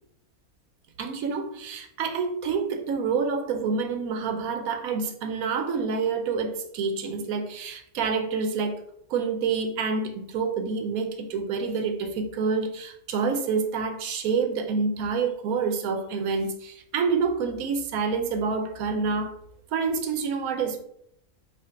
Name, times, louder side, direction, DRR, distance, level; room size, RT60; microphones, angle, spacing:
voice 1, 1.0-8.8 9.1-19.4 19.7-20.8, right 5 dB, 75° right, 6 dB, 1.1 m, -27 dB
5.0 x 2.5 x 3.7 m, 0.72 s
omnidirectional pair, 1.6 m